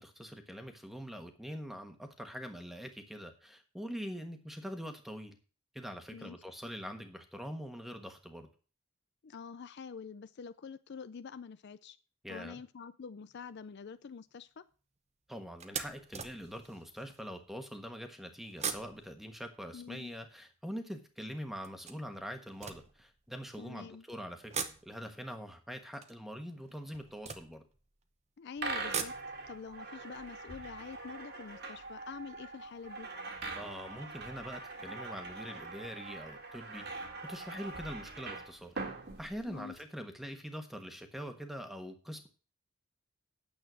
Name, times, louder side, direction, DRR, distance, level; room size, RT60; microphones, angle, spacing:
voice 1, 0.0-5.4 5.7-8.5 12.2-12.6 15.3-24.5 24.8-27.6 33.5-38.7 39.2-42.3, equal, ahead, 6 dB, 1.3 m, -44 dB
voice 2, 9.2-12.0 12.3-14.6 19.7-20.1 23.6-24.1 28.4-29.2 29.5-33.1 39.5-39.8, left 5 dB, 50° left, 13 dB, 0.4 m, -46 dB
sound 1, 13.2-13.5 14.1-14.3 14.7-14.8 15.6-17.3 18.4-20.8 21.6-23.6 24.3-28.1 28.6-31.6 31.9-32.0 32.3-32.4, right 6 dB, 30° right, 0.9 m, -44 dB
sound 2, 28.6-39.8, right 3 dB, 50° right, 1.9 m, -43 dB
9.3 x 7.8 x 6.2 m, 0.38 s
head